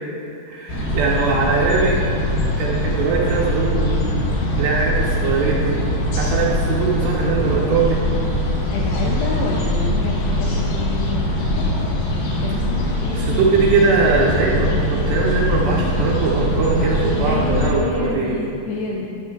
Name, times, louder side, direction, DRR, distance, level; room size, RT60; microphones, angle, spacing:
voice 1, 0.5-2.0 2.6-3.9 4.5-5.8 6.2-8.0 13.1-18.5, right 4 dB, 75° right, -3 dB, 2.7 m, -20 dB
sound 1, 0.7-17.7, left 1 dB, 60° left, 3.1 m, -22 dB
voice 2, 8.7-11.8 12.4-13.6 17.3-19.1, left 4 dB, 85° left, -1 dB, 2.5 m, -28 dB
11.5 x 10.0 x 2.4 m, 2.6 s
omnidirectional pair, 5.5 m